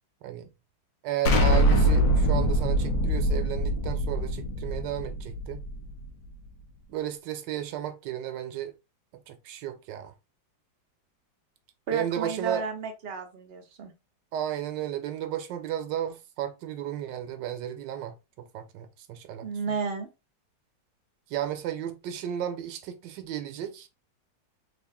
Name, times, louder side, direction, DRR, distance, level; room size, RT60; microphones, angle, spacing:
voice 1, 0.2-0.5 1.0-5.6 6.9-8.7 9.3-10.1 11.9-12.6 14.3-19.5 21.3-23.9, right 11 dB, 80° right, 1.2 m, -33 dB
Explosion, 1.3-6.1, equal, 90° left, 1.5 m, -24 dB
voice 2, 11.9-13.9 19.4-20.1, right 5 dB, 55° right, 0.6 m, -32 dB
3.6 x 2.5 x 3.4 m
omnidirectional pair, 2.0 m